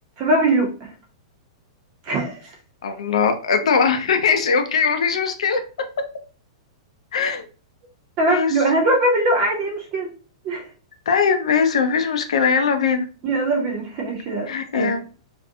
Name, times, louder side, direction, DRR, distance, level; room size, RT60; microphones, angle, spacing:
voice 1, 0.2-0.9 2.1-2.5 8.2-10.1 10.4-10.6 13.2-14.5 14.7-14.9, right 2 dB, 25° right, 1 dB, 0.6 m, -21 dB
voice 2, 2.8-5.6 7.1-7.4 8.3-8.5 11.1-13.1 14.5-15.0, left 6 dB, 85° left, 7 dB, 0.5 m, -20 dB
2.5 x 2.1 x 2.6 m, 0.37 s
supercardioid pair, 175°, 3 cm